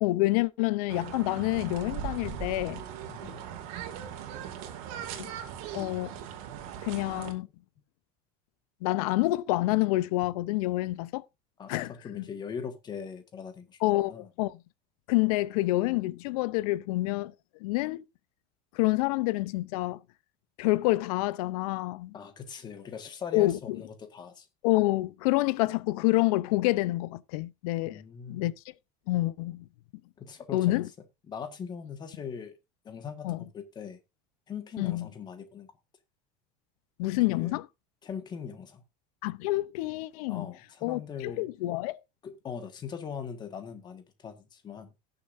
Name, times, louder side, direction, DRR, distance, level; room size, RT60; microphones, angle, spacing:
voice 1, 0.0-2.8 5.2-5.3 5.7-6.2 6.8-7.5 8.8-11.2 11.7-12.3 13.8-14.6 15.1-17.3 17.6-18.0 18.7-20.0 20.6-22.1 23.3-23.8 24.6-28.0 28.3-28.5 29.1-29.6 30.5-30.9 33.2-33.4 34.8-35.1 37.0-37.7 39.2-40.5 40.8-42.0, left 19 dB, 90° left, 0.7 m, -28 dB
sound 1, 0.9-7.3, right 9 dB, 75° right, 2.4 m, -39 dB
voice 2, 3.1-3.5 11.6-14.3 22.1-24.5 27.8-28.5 30.2-30.8 31.3-32.5 32.8-34.0 34.5-35.7 37.1-37.5 38.0-38.8 40.3-41.5 42.2-44.9, left 7 dB, 25° left, 1.7 m, -41 dB
18.0 x 6.9 x 2.6 m
cardioid pair, 170°, 18 cm